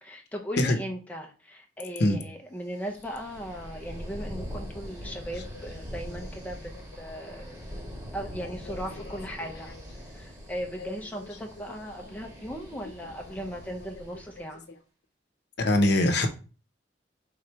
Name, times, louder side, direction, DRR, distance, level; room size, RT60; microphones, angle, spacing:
voice 1, 0.0-7.6 8.1-9.7 10.0-14.7, equal, 10° left, 0.5 m, -38 dB
sound 1, 2.7-14.5, equal, 20° right, 1.2 m, -42 dB
voice 2, 5.0-5.5 7.3-7.4 8.7-9.1 9.4-9.5 10.8-10.9 11.2-11.4 11.7-11.8 12.0-12.2 12.7-12.8 13.3-13.4 15.6-16.3, left 1 dB, 60° left, 0.8 m, -26 dB
3.7 x 3.1 x 4.5 m
head